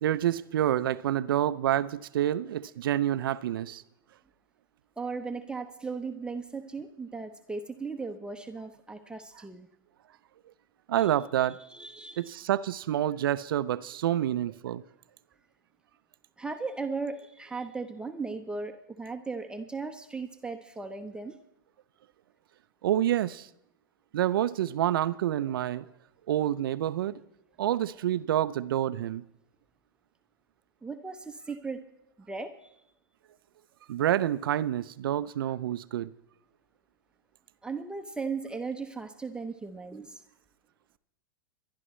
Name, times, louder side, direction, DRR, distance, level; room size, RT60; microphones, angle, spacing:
voice 1, 0.0-3.8 10.9-11.6 12.2-14.8 22.8-23.5 24.1-25.9 26.3-27.2 27.6-29.2 33.9-36.1, right 12 dB, 75° right, 0.5 m, -28 dB
voice 2, 5.0-9.7 11.0-11.1 11.7-12.3 16.4-21.4 30.8-31.8 32.3-32.7 37.6-40.2, right 4 dB, 5° right, 0.8 m, -37 dB
26.5 x 11.5 x 3.2 m
hypercardioid pair, 110°, 12 cm